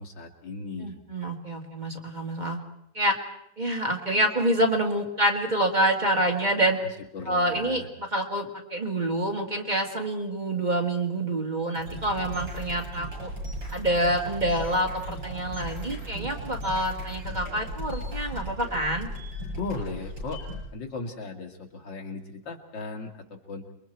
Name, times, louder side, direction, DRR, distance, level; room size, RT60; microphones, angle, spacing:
voice 1, 0.0-1.0 6.8-7.9 19.5-20.4 20.7-23.7, left 3 dB, 80° left, 2 dB, 2.8 m, -37 dB
voice 2, 0.8-2.6 2.9-3.2 3.6-6.8 7.3-13.3 13.7-19.1, right 1 dB, 25° right, 1 dB, 2.1 m, -27 dB
sound 1, 11.7-20.6, equal, 85° right, 8.5 m, -36 dB
28.5 x 22.0 x 4.6 m, 0.77 s
omnidirectional pair, 2.0 m